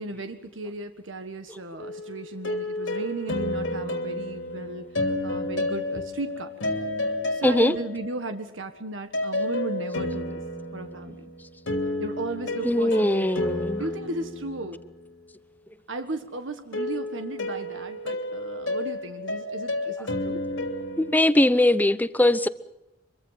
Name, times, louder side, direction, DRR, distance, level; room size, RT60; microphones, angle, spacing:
voice 1, 0.0-6.5 7.3-10.4 10.7-11.3 12.0-13.5 13.8-14.8 15.9-20.5, right 2 dB, 75° right, 1.6 m, -35 dB
sound 1, 1.8-8.4 9.1-15.1 16.7-21.2, left 1 dB, 80° left, 2.9 m, -31 dB
voice 2, 7.4-7.7 12.6-13.8 21.0-22.5, left 1 dB, 10° left, 0.8 m, -21 dB
25.0 x 23.5 x 5.8 m
head